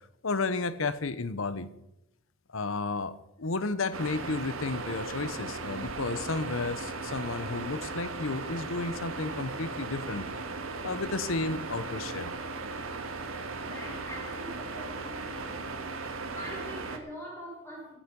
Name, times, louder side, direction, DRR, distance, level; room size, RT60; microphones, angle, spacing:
voice 1, 0.2-1.7 2.5-10.3 10.8-12.3, left 3 dB, 80° left, 14 dB, 0.9 m, -32 dB
sound 1, 3.9-17.0, right 3 dB, 85° right, 1.7 m, -37 dB
voice 2, 13.6-15.6 16.3-18.0, equal, 10° left, -4 dB, 6.9 m, -43 dB
17.0 x 10.0 x 5.3 m, 0.87 s
head